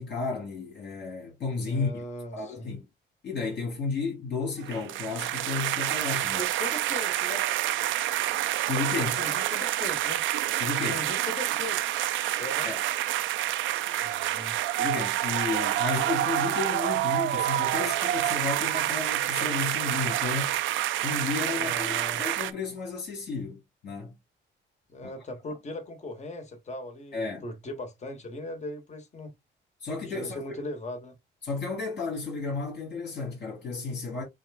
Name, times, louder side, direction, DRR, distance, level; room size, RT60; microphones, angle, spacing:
voice 1, 0.0-1.9 2.3-2.9 3.2-6.5 8.7-9.2 10.6-11.0 12.6-12.8 14.8-20.6 21.0-24.2 25.0-25.1 25.5-25.6 27.1-27.5 29.8-30.4 31.4-34.2, left 4 dB, 60° left, 3.1 m, -33 dB
voice 2, 1.7-2.7 6.3-7.4 9.2-10.2 10.9-11.9 12.4-12.7 14.0-14.6 21.6-22.2 24.9-29.3 30.1-31.1, left 1 dB, 35° left, 1.4 m, -39 dB
sound 1, 4.6-22.5, right 13 dB, 75° right, 0.5 m, -28 dB
7.1 x 2.4 x 2.4 m
cardioid pair, 90°, 20 cm